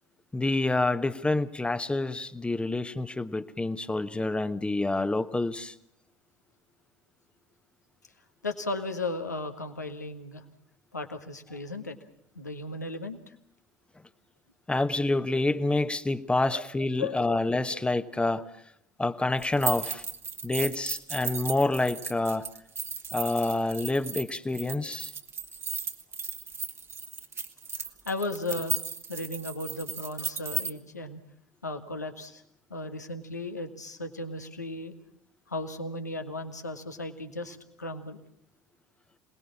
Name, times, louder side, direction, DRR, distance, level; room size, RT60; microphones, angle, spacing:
voice 1, 0.3-5.7 14.7-18.4 19.0-20.0 20.4-22.5 23.1-25.1, left 2 dB, 10° left, 1.2 m, -27 dB
voice 2, 8.4-10.4 10.9-12.0 12.3-13.3 16.5-16.6 17.0-17.4 17.7-17.8 28.0-28.8 29.1-31.2 31.6-32.4 32.7-34.9 35.5-38.2, left 2 dB, 85° left, 1.6 m, -35 dB
sound 1, 19.4-30.7, right 6 dB, 30° right, 1.6 m, -35 dB
27.0 x 19.5 x 7.2 m
figure-of-eight pair, 65°, 9 cm